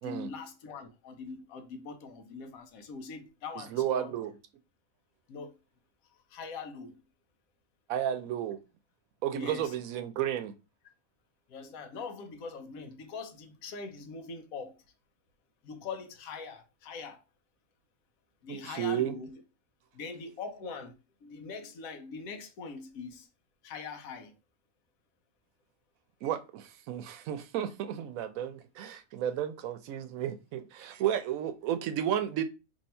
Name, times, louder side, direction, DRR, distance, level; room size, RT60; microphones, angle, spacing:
voice 1, 0.0-4.1 5.3-5.5 6.3-6.9 9.3-9.7 11.5-14.7 15.6-17.2 18.4-19.4 19.9-20.9 21.2-23.3 23.6-24.3, left 4 dB, 85° left, 1.2 m, -42 dB
voice 2, 3.6-4.4 7.9-8.6 9.2-10.5 18.5-19.2 26.2-32.4, right 10 dB, 80° right, 1.0 m, -32 dB
2.9 x 2.7 x 4.2 m
omnidirectional pair, 1.4 m